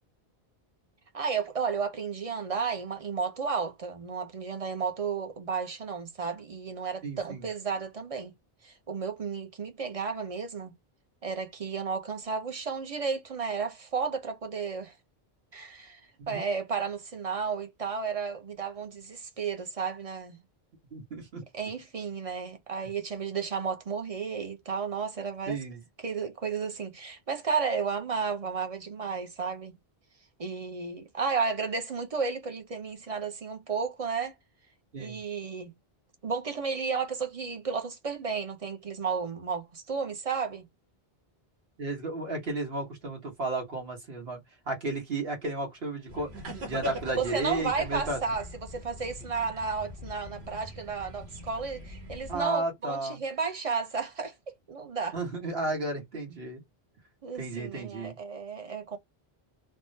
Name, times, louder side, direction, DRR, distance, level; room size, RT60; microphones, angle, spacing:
voice 1, 1.1-8.3 8.6-10.7 11.2-14.9 15.5-20.4 21.5-25.6 26.0-29.7 30.4-34.3 35.0-35.7 36.2-40.7 47.1-54.3 54.7-55.2 57.2-59.0, right 5 dB, 40° right, 0.6 m, -33 dB
voice 2, 7.0-7.4 16.3-16.4 20.9-21.4 25.5-25.8 34.9-35.2 41.8-44.4 44.6-46.3 46.6-48.2 52.3-53.2 55.1-56.6 57.4-58.1, right 2 dB, 70° right, 1.5 m, -33 dB
sound 1, 46.1-52.4, equal, 90° right, 1.3 m, -42 dB
3.4 x 2.1 x 2.6 m
omnidirectional pair, 1.0 m